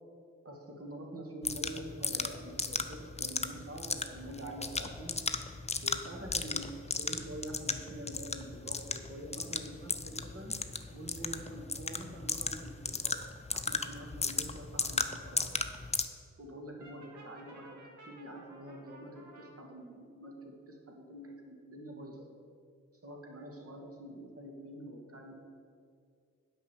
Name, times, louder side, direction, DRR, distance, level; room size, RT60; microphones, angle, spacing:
voice 1, 0.4-5.1 5.8-10.6 10.9-13.2 13.5-15.5 16.4-17.8 18.1-22.3 23.0-25.3, right 1 dB, 50° right, 1 dB, 2.0 m, -46 dB
sound 1, 1.4-16.0, left 3 dB, 20° left, 0.7 m, -36 dB
Brass instrument, 16.8-19.5, right 1 dB, 70° right, 1.9 m, -54 dB
8.4 x 5.5 x 7.4 m, 2.3 s
cardioid pair, 50°, 30 cm